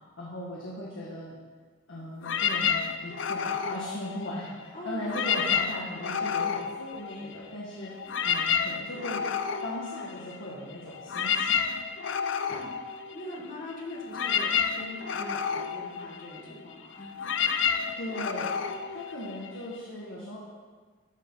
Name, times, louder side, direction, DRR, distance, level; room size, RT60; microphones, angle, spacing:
voice 1, 0.2-1.4 1.9-7.9 8.2-9.2 9.6-11.6 18.0-20.4, left 1 dB, 90° left, -5 dB, 1.7 m, -38 dB
sound 1, 2.2-4.6 5.0-7.6 7.8-19.8, left 7 dB, 70° left, 0.5 m, -30 dB
voice 2, 13.1-17.1, left 1 dB, 45° left, -3 dB, 1.9 m, -41 dB
13.0 x 4.6 x 5.6 m, 1.5 s
head